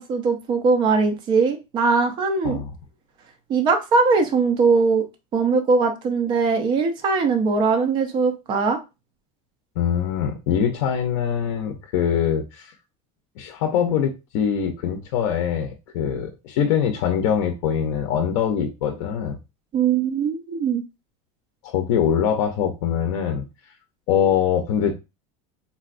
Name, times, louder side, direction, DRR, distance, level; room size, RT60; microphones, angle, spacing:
voice 1, 0.0-2.6 3.5-5.1 5.3-8.8 19.7-20.8, right 4 dB, 25° right, 5 dB, 0.5 m, -20 dB
voice 2, 9.8-12.7 13.4-19.4 21.6-23.4 24.1-24.9, left 8 dB, 70° left, 4 dB, 0.5 m, -23 dB
3.9 x 2.2 x 2.4 m, 0.26 s
cardioid pair, 170°, 17 cm